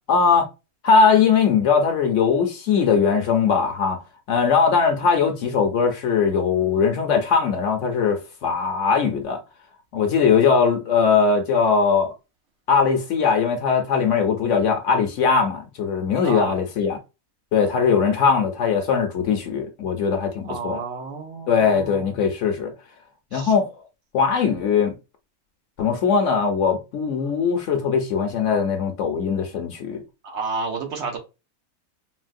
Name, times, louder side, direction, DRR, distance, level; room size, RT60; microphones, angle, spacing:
voice 1, 0.1-0.4 0.8-4.0 4.3-9.4 9.9-12.1 12.7-17.0 17.5-20.8 21.5-22.7 23.3-23.7 24.1-24.9 25.8-30.0, left 5 dB, 65° left, 0.9 m, -20 dB
voice 2, 16.2-16.6 20.4-22.1 23.3-23.5 30.2-31.2, right 4 dB, 60° right, 0.8 m, -30 dB
3.8 x 2.1 x 2.5 m
omnidirectional pair, 1.5 m